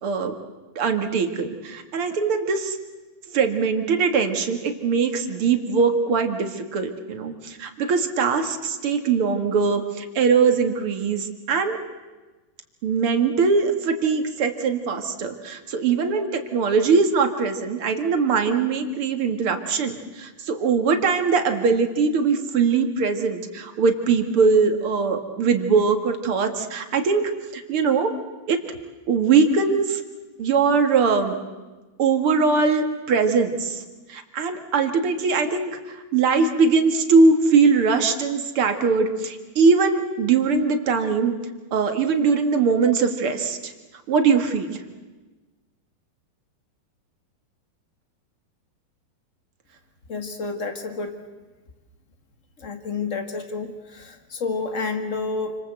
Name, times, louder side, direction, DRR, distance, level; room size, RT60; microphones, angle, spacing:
voice 1, 0.0-0.3 0.8-2.8 3.3-11.8 12.8-27.2 27.5-28.1 28.5-28.6 29.1-30.0 30.4-31.4 32.0-33.8 34.1-41.3 41.7-43.7 44.1-44.8, right 5 dB, 45° right, 6 dB, 2.0 m, -21 dB
voice 2, 50.1-51.2 52.6-55.6, left 4 dB, 45° left, 6 dB, 0.9 m, -29 dB
29.0 x 25.5 x 8.0 m, 1.2 s
omnidirectional pair, 4.4 m